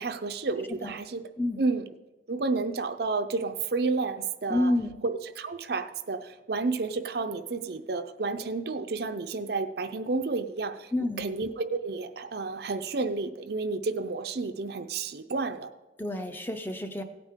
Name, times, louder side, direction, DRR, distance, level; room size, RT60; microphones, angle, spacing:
voice 1, 0.0-1.3 1.6-1.8 2.3-4.7 5.0-10.9 11.2-15.7, right 3 dB, 55° right, 9 dB, 0.5 m, -31 dB
voice 2, 4.5-5.0 10.9-11.3 16.0-17.0, left 1 dB, 10° left, 6 dB, 0.6 m, -29 dB
16.5 x 8.8 x 3.7 m, 1.1 s
head